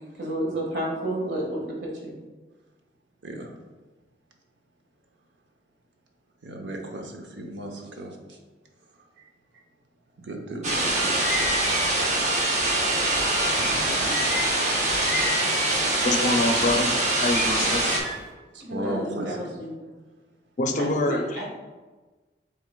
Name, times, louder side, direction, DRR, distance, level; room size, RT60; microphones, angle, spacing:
voice 1, 0.2-2.1 18.6-19.7 20.8-21.5, right 1 dB, 70° right, -3 dB, 1.4 m, -31 dB
voice 2, 6.4-8.1 10.3-11.3 13.6-14.2 18.5-19.4, right 1 dB, 85° right, 2 dB, 0.8 m, -35 dB
sound 1, 10.6-18.0, right 2 dB, 40° right, 0.8 m, -24 dB
sound 2, 10.7-18.3, left 1 dB, ahead, 0.7 m, -33 dB
voice 3, 16.0-16.9 17.2-18.0 20.6-21.5, left 2 dB, 45° left, 4 dB, 0.5 m, -25 dB
6.2 x 3.8 x 2.2 m, 1.3 s
head